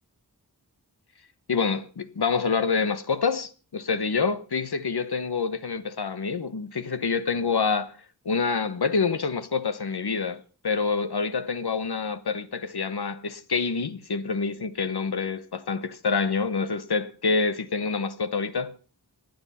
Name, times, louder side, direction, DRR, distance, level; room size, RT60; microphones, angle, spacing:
voice 1, 1.5-8.0 8.2-18.8, left 5 dB, 75° left, 1.0 m, -27 dB
26.5 x 9.7 x 4.2 m
wide cardioid pair, 40°, 39 cm